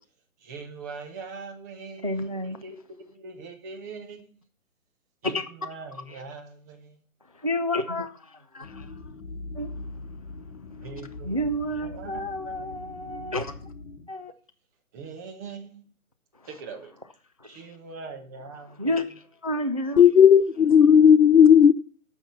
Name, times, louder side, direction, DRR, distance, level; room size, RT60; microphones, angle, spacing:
voice 1, 0.4-2.8 3.0-4.3 5.2-7.0 10.8-11.5 11.8-13.0 14.9-15.9 16.5-16.9 17.4-18.9, right 4 dB, 15° right, 0.8 m, -42 dB
voice 2, 2.0-2.6 5.2-5.4 7.4-8.9 9.6-9.7 11.2-13.5 14.1-14.3 17.4-17.6 18.8-19.0 19.4-20.0, left 1 dB, 30° right, 0.4 m, -29 dB
sound 1, 8.6-14.1, left 3 dB, 55° left, 1.5 m, -41 dB
voice 3, 20.0-21.7, left 8 dB, 70° left, 0.9 m, -14 dB
8.9 x 6.2 x 6.9 m
figure-of-eight pair, 145°, 42 cm